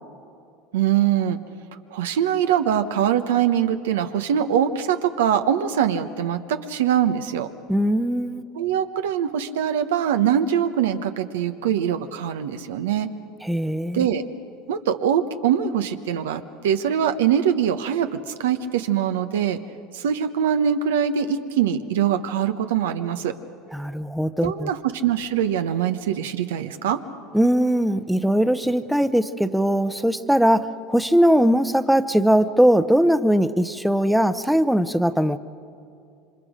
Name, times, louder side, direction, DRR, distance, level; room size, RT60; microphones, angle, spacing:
voice 1, 0.7-1.4 1.9-7.5 8.5-13.1 13.9-14.2 14.7-18.1 18.4-19.6 19.9-23.3 24.4-27.0, right 9 dB, 85° right, 8 dB, 1.0 m, -23 dB
voice 2, 7.7-8.4 13.4-14.1 23.7-24.7 27.3-35.4, equal, ahead, 12 dB, 0.8 m, -20 dB
27.5 x 24.5 x 5.1 m, 2.5 s
hypercardioid pair, 90°, 0 cm